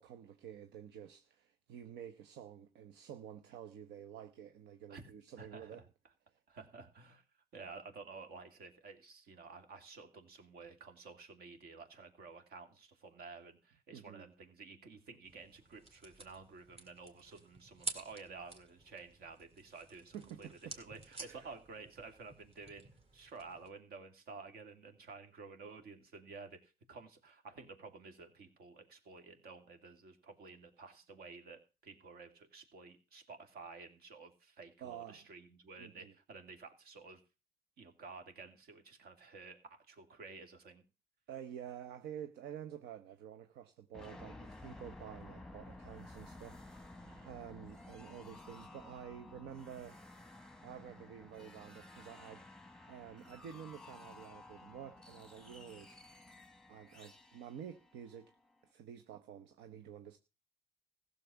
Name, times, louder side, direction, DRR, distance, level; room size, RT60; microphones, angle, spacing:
voice 1, 0.0-5.8 13.9-14.3 20.1-20.7 21.2-21.5 34.8-35.2 35.8-36.1 41.3-50.0 50.5-52.4 52.9-56.0 56.7-58.3 58.6-60.2, right 9 dB, 85° right, 1.0 m, -50 dB
voice 2, 5.4-5.8 6.5-7.2 7.5-22.9 23.1-37.2 37.8-40.8 47.0-47.3, right 4 dB, 65° right, 2.8 m, -52 dB
sound 1, 15.2-23.7, right 3 dB, 35° right, 2.6 m, -50 dB
sound 2, 43.9-58.6, left 2 dB, 5° left, 1.1 m, -54 dB
15.5 x 6.9 x 6.9 m
cardioid pair, 110°, 17 cm